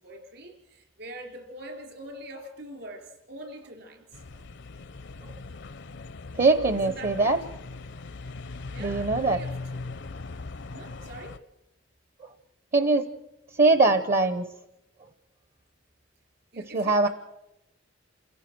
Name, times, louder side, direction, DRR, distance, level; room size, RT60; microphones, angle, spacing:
voice 1, 0.0-4.2 6.7-7.5 8.6-9.8 10.7-11.4 16.5-17.1, right 1 dB, 65° right, 4 dB, 3.9 m, -43 dB
sound 1, 4.1-11.4, left 3 dB, 65° left, 0.6 m, -39 dB
voice 2, 6.3-7.4 8.8-9.4 12.2-12.3 12.7-13.1 13.5-14.5 16.7-17.1, right 3 dB, 45° right, 11 dB, 0.9 m, -22 dB
28.0 x 16.5 x 6.1 m, 0.92 s
head